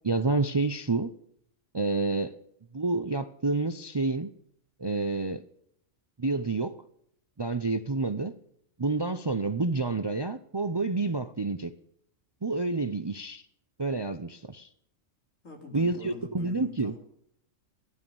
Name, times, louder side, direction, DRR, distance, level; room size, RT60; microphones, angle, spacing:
voice 1, 0.0-1.1 1.7-2.4 2.7-4.3 4.8-5.4 6.2-6.8 7.4-8.3 8.8-11.7 12.4-13.4 13.8-14.7 15.7-16.9, right 3 dB, 35° right, 12 dB, 0.4 m, -28 dB
voice 2, 15.4-17.0, left 4 dB, 80° left, 3 dB, 3.6 m, -44 dB
15.0 x 11.0 x 7.1 m, 0.69 s
omnidirectional pair, 1.3 m